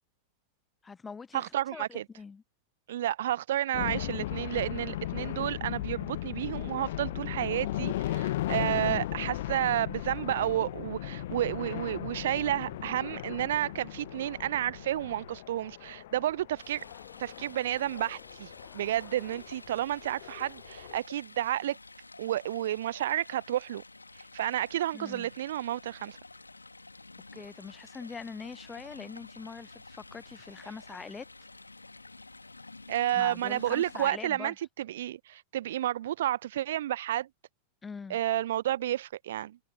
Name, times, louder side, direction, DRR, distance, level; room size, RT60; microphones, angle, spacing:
voice 1, 0.8-2.4 24.9-25.3 27.3-31.3 33.2-34.5 37.8-38.2, left 5 dB, 15° left, 0.6 m, -43 dB
voice 2, 1.3-2.0 2.9-16.8 17.2-21.8 22.2-23.8 24.3-26.2 32.9-37.3 38.1-39.6, right 12 dB, 60° right, 0.7 m, -31 dB
sound 1, 3.7-21.0, left 15 dB, 55° left, 0.5 m, -37 dB
sound 2, 6.1-15.4, right 5 dB, 75° right, 6.0 m, -54 dB
Stream, 16.6-34.1, left 3 dB, 80° left, 2.3 m, -50 dB
figure-of-eight pair, 90°, 0 cm